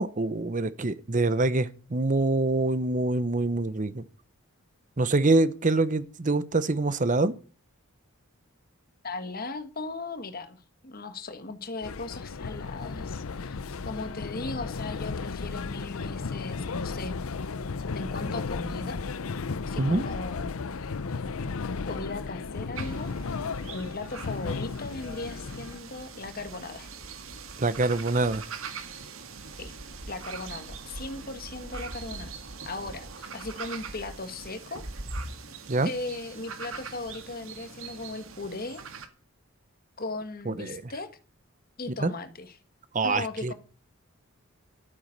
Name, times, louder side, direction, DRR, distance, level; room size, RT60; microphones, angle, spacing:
voice 1, 0.0-4.0 5.0-7.3 19.8-20.0 27.6-28.4 35.7-35.9 40.5-40.8 42.0-42.1 42.9-43.5, right 2 dB, 35° right, 0.7 m, -25 dB
voice 2, 9.0-13.6 13.8-17.2 17.9-19.1 19.6-20.5 21.9-23.1 23.7-26.9 29.6-29.7 30.1-32.3 32.6-34.8 35.8-38.8 40.0-41.1 41.8-42.6 43.0-43.5, left 3 dB, 45° left, 1.5 m, -37 dB
sound 1, 11.8-25.8, left 4 dB, 75° left, 0.6 m, -34 dB
sound 2, 22.7-39.1, right 4 dB, 70° right, 1.9 m, -42 dB
12.5 x 9.2 x 6.6 m
head